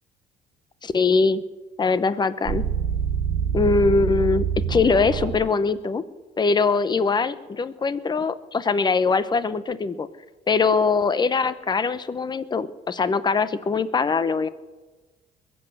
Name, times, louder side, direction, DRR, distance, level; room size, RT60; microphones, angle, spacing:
voice 1, 0.8-1.4 1.8-2.7 3.5-6.0 6.4-10.1 10.5-14.5, left 4 dB, 25° left, 14 dB, 0.9 m, -22 dB
sound 1, 2.5-5.4, right 7 dB, 85° right, 1.8 m, -25 dB
21.5 x 7.9 x 7.8 m, 1.2 s
cardioid pair, 110°, 17 cm